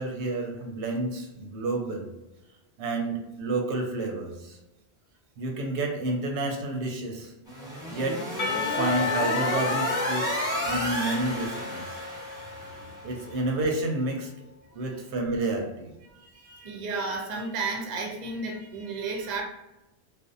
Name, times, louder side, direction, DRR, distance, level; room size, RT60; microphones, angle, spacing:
voice 1, 0.0-2.1 2.8-4.6 5.4-7.3 7.9-8.2 8.7-12.0 13.0-14.3 14.7-15.9, right 2 dB, 85° right, 1 dB, 0.9 m, -30 dB
sound 1, 7.5-13.0, equal, 5° right, 0.8 m, -32 dB
Percussion / Church bell, 8.4-13.6, left 6 dB, 75° left, 0.9 m, -33 dB
voice 2, 12.2-13.1 14.7-14.9 16.1-19.4, right 3 dB, 50° right, 1 dB, 0.5 m, -34 dB
2.5 x 2.1 x 2.5 m, 0.94 s
omnidirectional pair, 1.2 m